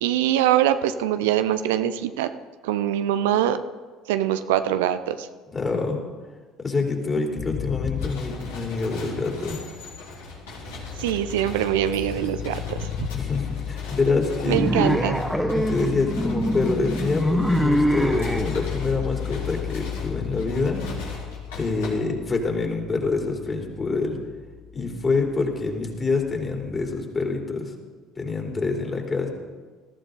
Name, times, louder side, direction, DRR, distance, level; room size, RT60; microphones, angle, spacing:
voice 1, 0.0-2.3 2.6-3.6 4.1-5.3 11.0-13.1 14.5-15.2, right 11 dB, 75° right, 11 dB, 0.6 m, -23 dB
voice 2, 5.5-6.0 6.6-9.6 13.1-14.6 15.5-21.0 21.5-24.2 24.7-27.7 28.2-29.3, left 3 dB, 30° left, 1 dB, 3.6 m, -26 dB
sound 1, 7.4-9.1 10.1-27.0, left 10 dB, 50° left, 0.6 m, -35 dB
sound 2, 8.0-21.9, left 3 dB, 75° left, 3.9 m, -40 dB
sound 3, 14.5-18.5, equal, ahead, 1.7 m, -23 dB
20.0 x 14.5 x 4.0 m, 1.4 s
figure-of-eight pair, 60°, 0 cm